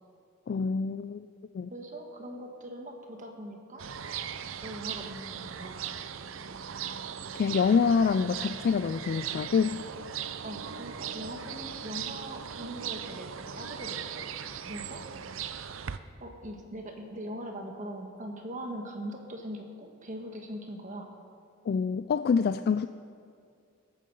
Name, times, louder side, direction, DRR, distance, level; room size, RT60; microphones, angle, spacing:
voice 1, 0.5-1.3 1.5-1.7 7.4-9.8 21.7-22.9, left 5 dB, 50° left, 11 dB, 0.3 m, -26 dB
voice 2, 1.7-3.8 4.6-5.8 10.4-14.3 14.7-15.0 16.2-21.1, equal, 40° right, 3 dB, 1.4 m, -41 dB
sound 1, 3.8-16.0, right 8 dB, 75° right, 0.6 m, -39 dB
20.5 x 9.2 x 5.4 m, 2.4 s
head